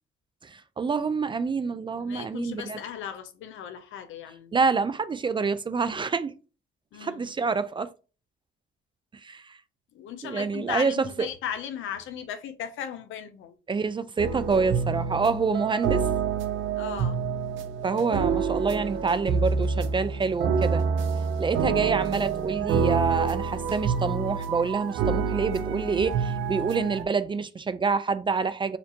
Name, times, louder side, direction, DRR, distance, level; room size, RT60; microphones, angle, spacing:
voice 1, 0.4-2.8 4.5-6.3 7.0-7.9 9.2-9.6 10.2-11.3 13.7-16.0 17.8-20.9 21.4-28.8, right 4 dB, 25° right, 0.3 m, -27 dB
voice 2, 2.0-4.5 6.9-7.3 9.9-13.6 16.8-17.2, left 9 dB, 80° left, 0.7 m, -37 dB
sound 1, 14.2-27.0, right 6 dB, 80° right, 0.6 m, -27 dB
4.3 x 2.6 x 2.8 m
cardioid pair, 90°, 20 cm